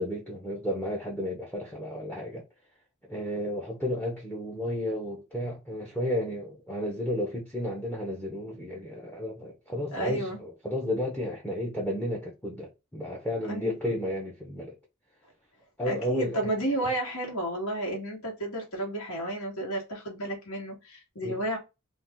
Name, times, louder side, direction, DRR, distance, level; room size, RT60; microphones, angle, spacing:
voice 1, 0.0-2.4 3.0-14.7 15.8-16.5 21.2-21.4, left 1 dB, 5° left, 0.6 m, -32 dB
voice 2, 9.9-10.4 13.5-13.7 15.8-21.6, right 1 dB, 80° left, 1.4 m, -32 dB
2.7 x 2.4 x 3.5 m
head